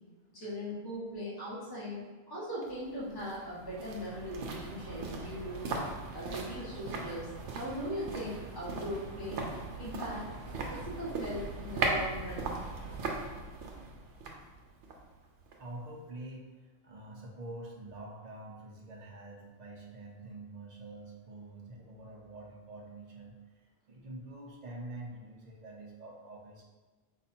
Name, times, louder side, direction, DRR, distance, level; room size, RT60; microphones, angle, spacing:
voice 1, 0.3-2.0 2.3-5.7 6.1-9.5 9.8-10.2 10.7-12.6, equal, 20° left, -8 dB, 1.3 m, -39 dB
sound 1, 2.6-15.8 16.1-16.2, right 3 dB, 75° right, 0.9 m, -39 dB
voice 2, 15.6-16.5 16.8-26.6, right 2 dB, 40° right, -2 dB, 0.8 m, -46 dB
4.0 x 2.6 x 4.3 m, 1.3 s
omnidirectional pair, 1.2 m